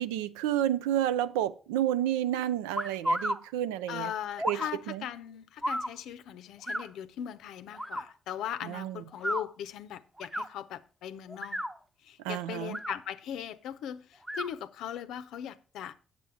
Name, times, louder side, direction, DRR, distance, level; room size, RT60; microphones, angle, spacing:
voice 1, 0.0-4.1 4.4-4.6 4.9-5.0 8.6-9.0 12.2-12.8, right 11 dB, 80° right, 0.4 m, -30 dB
sound 1, 2.8-3.4 4.4-4.7 5.6-5.9 6.6-6.9 7.7-8.0 9.1-9.4 10.2-10.5 11.3-11.7 12.6-13.0 14.2-14.5, equal, 10° right, 1.0 m, -32 dB
voice 2, 3.9-11.6 12.0-15.9, left 10 dB, 70° left, 0.6 m, -39 dB
8.8 x 7.4 x 4.7 m
hypercardioid pair, 40°, 0 cm